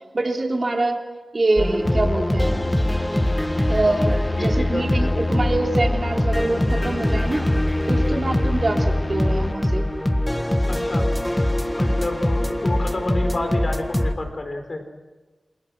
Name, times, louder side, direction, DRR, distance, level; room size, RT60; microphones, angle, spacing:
voice 1, 0.1-1.0 1.3-2.7 3.7-7.5 7.9-9.9, right 2 dB, 50° right, 2 dB, 3.6 m, -24 dB
sound 1, 1.6-14.2, left 1 dB, 15° left, 1.5 m, -23 dB
sound 2, 1.9-9.5, left 2 dB, 35° left, 1.1 m, -29 dB
voice 2, 3.8-5.3 7.9-8.2 10.7-11.1 11.7-14.8, left 2 dB, 55° left, 5 dB, 4.7 m, -30 dB
28.5 x 21.0 x 6.2 m, 1.2 s
wide cardioid pair, 65°, 0 cm